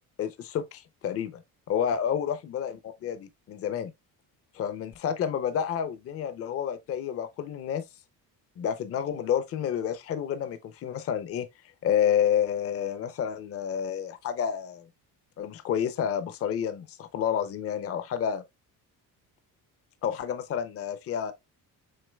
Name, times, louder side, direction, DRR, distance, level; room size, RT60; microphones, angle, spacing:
voice 1, 0.2-1.4 1.7-3.9 4.5-7.8 8.6-11.5 11.8-14.9 15.4-18.4 20.0-21.3, left 8 dB, 40° left, 0.5 m, -29 dB
6.5 x 3.7 x 2.2 m
cardioid pair, 145°, 38 cm